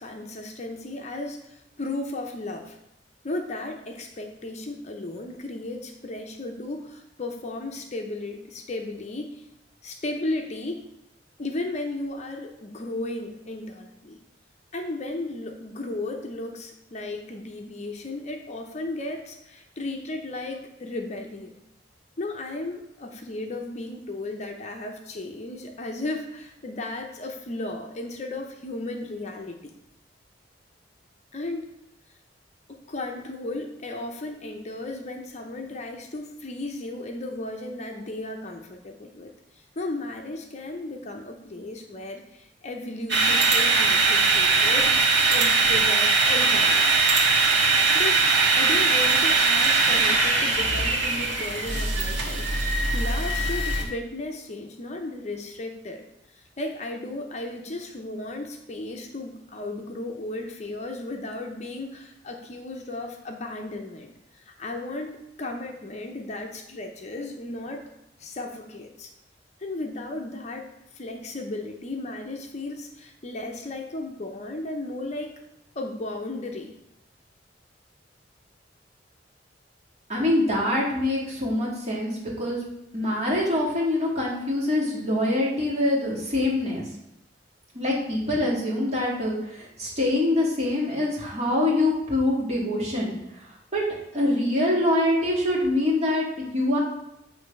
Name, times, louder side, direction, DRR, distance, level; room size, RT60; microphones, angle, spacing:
voice 1, 0.0-2.8 3.2-9.4 9.8-10.8 11.4-14.2 14.7-21.6 22.2-29.7 31.3-31.6 32.7-46.9 47.9-48.2 48.5-56.0 56.3-67.8 68.2-69.1 69.6-70.7 70.9-75.3 75.8-76.7, left 2 dB, 40° left, 3 dB, 0.6 m, -35 dB
sound 1, 43.1-53.8, right 3 dB, 75° right, 1.3 m, -21 dB
voice 2, 80.1-82.6 82.9-86.8 87.7-93.4 93.7-93.8 94.1-96.8, left 1 dB, 35° right, -5 dB, 2.1 m, -24 dB
8.1 x 3.2 x 5.3 m, 0.86 s
head